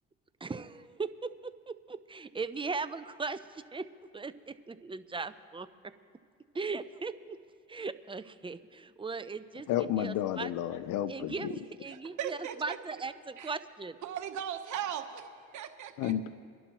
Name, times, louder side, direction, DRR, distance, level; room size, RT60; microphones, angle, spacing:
voice 1, 0.4-3.9 4.1-5.9 6.5-7.4 7.7-9.7 10.0-10.5 11.1-14.0, right 4 dB, 15° right, 12 dB, 0.5 m, -38 dB
voice 2, 9.7-11.5 16.0-16.3, left 11 dB, 90° left, 13 dB, 0.6 m, -31 dB
voice 3, 11.9-13.0 13.4-13.5 14.0-16.1, right 9 dB, 75° right, 6 dB, 1.2 m, -38 dB
26.0 x 11.5 x 3.0 m, 2.2 s
cardioid pair, 90°, 30 cm